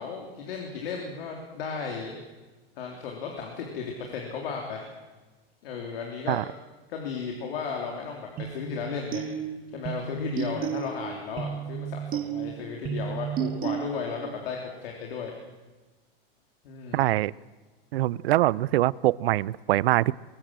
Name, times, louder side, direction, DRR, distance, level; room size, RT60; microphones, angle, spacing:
voice 1, 0.0-2.2 2.8-4.9 5.6-6.4 6.9-9.2 9.7-15.3 16.6-17.1, left 6 dB, 75° left, 1 dB, 3.6 m, -35 dB
sound 1, 8.4-14.3, right 8 dB, 30° right, 1.3 m, -33 dB
voice 2, 16.9-17.3 17.9-20.1, right 16 dB, 80° right, 23 dB, 0.6 m, -23 dB
21.5 x 16.5 x 7.7 m, 1.3 s
supercardioid pair, 135°, 30 cm